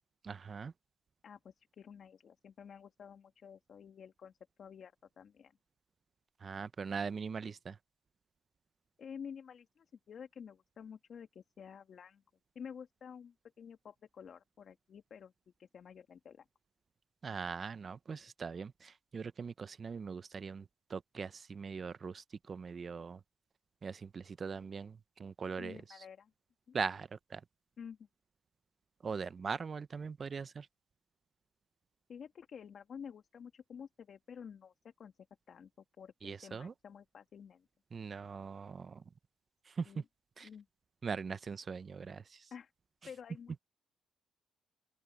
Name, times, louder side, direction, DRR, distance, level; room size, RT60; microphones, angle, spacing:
voice 1, 0.2-0.7 6.4-7.8 17.2-23.2 23.8-26.0 26.7-27.4 29.0-30.7 36.2-36.7 37.9-39.0 39.7-39.9 40.4-40.5 41.0-42.5, right 5 dB, 40° right, 0.6 m, -41 dB
voice 2, 1.2-5.5 9.0-12.2 12.5-15.3 15.6-16.4 25.6-26.3 26.7-26.8 27.8-28.1 32.1-35.1 35.5-37.7 39.9-40.0 40.4-40.7 42.5-42.7 43.1-43.6, left 7 dB, 55° left, 2.5 m, -51 dB
open air
cardioid pair, 90°, 0 cm